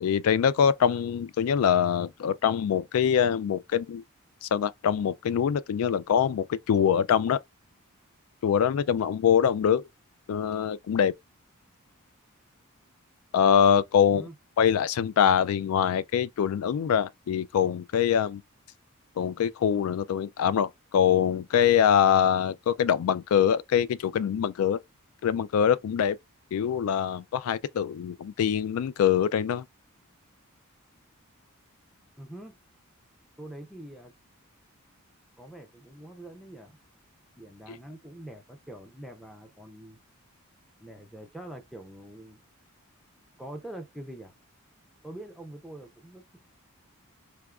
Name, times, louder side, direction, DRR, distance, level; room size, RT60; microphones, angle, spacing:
voice 1, 0.0-4.0 4.4-7.4 8.4-9.8 10.3-11.1 13.3-14.3 14.6-18.4 19.2-24.8 25.2-26.2 26.5-29.6, left 8 dB, 75° left, 0.3 m, -24 dB
voice 2, 13.9-14.3 32.2-32.6 33.4-34.1 35.4-36.8 37.4-40.0 40.8-42.4 43.4-44.3 45.0-46.5, right 1 dB, ahead, 0.5 m, -44 dB
3.5 x 2.9 x 2.3 m
head